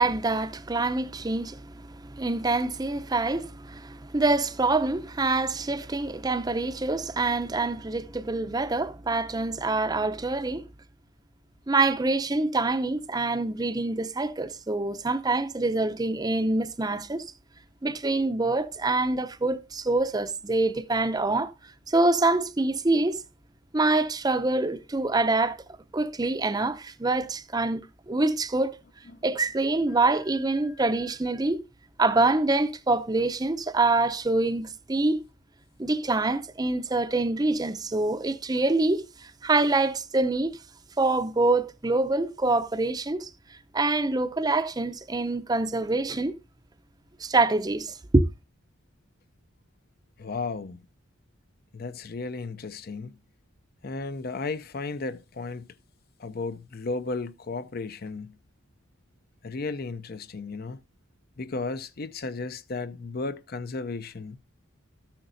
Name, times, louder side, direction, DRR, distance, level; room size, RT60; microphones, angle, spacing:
voice 1, 0.0-10.7 11.7-17.3 17.8-21.5 21.9-23.2 23.7-25.6 25.9-27.8 28.1-28.8 29.2-31.6 32.0-35.2 35.8-40.5 41.0-43.3 43.7-46.4 47.2-48.2, right 2 dB, 20° right, 0.6 m, -25 dB
voice 2, 50.2-50.8 51.7-53.2 53.8-55.7 56.2-58.4 59.4-60.8 61.4-64.4, left 3 dB, 50° left, 0.5 m, -34 dB
13.0 x 10.0 x 2.6 m
head